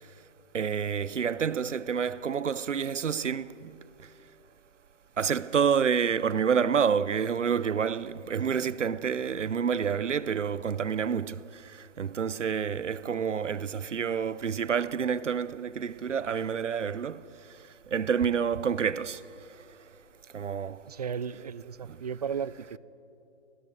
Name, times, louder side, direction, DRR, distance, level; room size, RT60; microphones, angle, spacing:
voice 1, 0.5-3.7 5.2-17.2 17.9-19.2 20.3-20.8 21.9-22.0, right 7 dB, 85° right, 0.8 m, -28 dB
voice 2, 20.9-22.8, right 7 dB, 35° right, 0.4 m, -35 dB
21.5 x 18.0 x 7.9 m
figure-of-eight pair, 145°, 36 cm